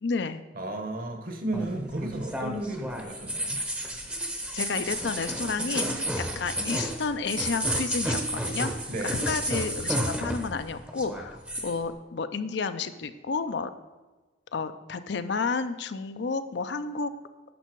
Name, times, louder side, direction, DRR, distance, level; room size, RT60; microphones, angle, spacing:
voice 1, 0.0-0.4 4.5-13.7 14.5-17.1, left 4 dB, 65° left, 11 dB, 0.5 m, -31 dB
voice 2, 0.5-3.6 8.9-9.2, right 1 dB, 45° right, 5 dB, 1.1 m, -33 dB
sound 1, 1.5-10.6 10.9-11.7, right 1 dB, 5° right, 0.7 m, -31 dB
10.0 x 6.9 x 4.6 m, 1.2 s
head